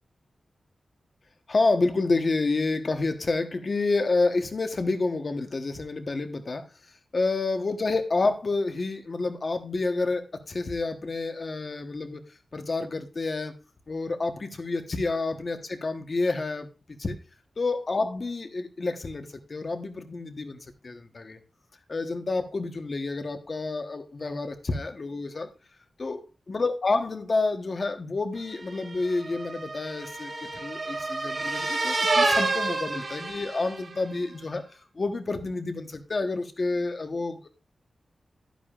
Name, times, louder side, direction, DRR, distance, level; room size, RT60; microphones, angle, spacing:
voice 1, 1.5-6.7 7.1-12.2 12.5-13.5 13.9-17.2 17.6-21.4 21.9-25.5 26.0-34.6 34.9-37.5, left 3 dB, 45° left, 7 dB, 1.1 m, -29 dB
sound 1, 28.6-34.0, right 3 dB, 50° right, 2.3 m, -28 dB
11.0 x 10.5 x 2.4 m, 0.30 s
wide cardioid pair, 120°, 0 cm